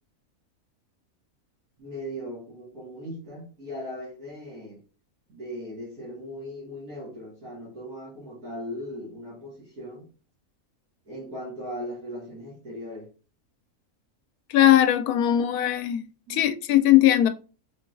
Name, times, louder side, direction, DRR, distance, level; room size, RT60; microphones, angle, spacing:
voice 1, 1.8-4.8 5.3-10.1 11.1-13.1 16.3-16.4, equal, 85° right, 2.3 m, -38 dB
voice 2, 14.5-16.0 16.3-17.3, left 12 dB, 85° left, 1.1 m, -19 dB
4.8 x 3.8 x 2.5 m
omnidirectional pair, 1.5 m